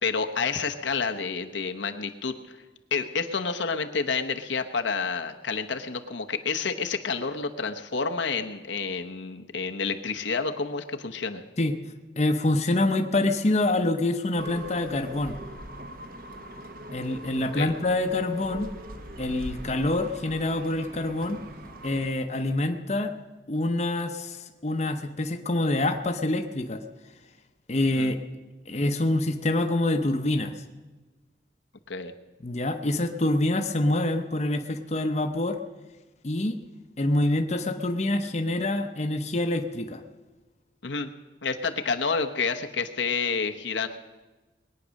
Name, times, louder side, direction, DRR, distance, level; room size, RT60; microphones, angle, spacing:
voice 1, 0.0-2.6 2.9-11.4 17.6-17.7 28.0-28.1 31.9-32.1 40.8-41.1 41.4-43.9, left 5 dB, 90° left, 5 dB, 1.0 m, -29 dB
voice 2, 12.2-15.4 16.9-18.7 19.2-21.4 21.8-23.1 23.5-26.8 27.7-28.2 28.7-30.5 32.4-35.6 36.2-36.6 37.0-40.0, left 2 dB, 40° left, 6 dB, 0.8 m, -26 dB
sound 1, 14.4-22.1, right 1 dB, 50° right, 1.2 m, -42 dB
21.0 x 9.4 x 6.4 m, 1.2 s
head